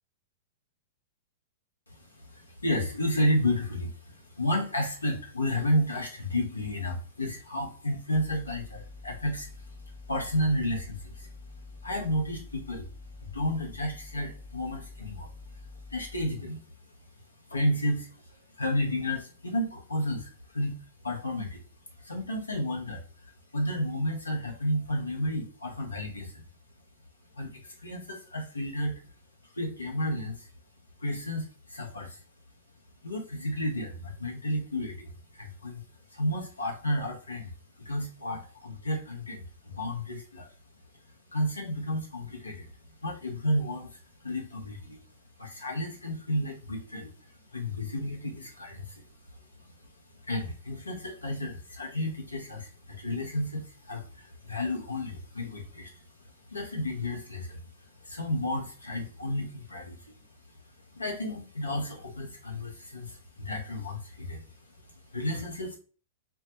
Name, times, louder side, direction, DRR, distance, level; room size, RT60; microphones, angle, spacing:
voice 1, 1.9-12.9 13.2-15.6 15.9-16.7 17.5-21.6 22.0-26.4 27.3-29.1 29.4-30.5 31.0-32.2 33.0-35.8 36.1-37.5 37.8-40.5 41.0-45.0 45.4-65.8, left 1 dB, 90° left, 1 dB, 0.7 m, -32 dB
sound 1, 8.1-16.3, left 3 dB, 15° left, 0.3 m, -47 dB
2.2 x 2.1 x 2.8 m, 0.38 s
figure-of-eight pair, 105°, 0 cm